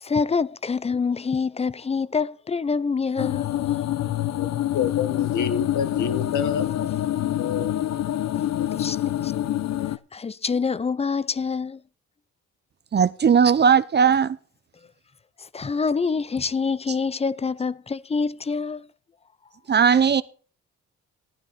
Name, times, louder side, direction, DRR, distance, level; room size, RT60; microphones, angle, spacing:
voice 1, 0.0-3.5 8.7-9.3 10.1-11.8 15.4-18.9, left 5 dB, 20° left, 0.4 m, -26 dB
sound 1, 3.2-10.0, left 12 dB, 60° left, 0.7 m, -26 dB
voice 2, 4.4-7.7 8.6-8.9, left 7 dB, 75° left, 1.5 m, -29 dB
voice 3, 12.9-14.4 19.7-20.2, right 7 dB, 35° right, 0.7 m, -18 dB
14.0 x 9.6 x 4.2 m
cardioid pair, 90°, 30 cm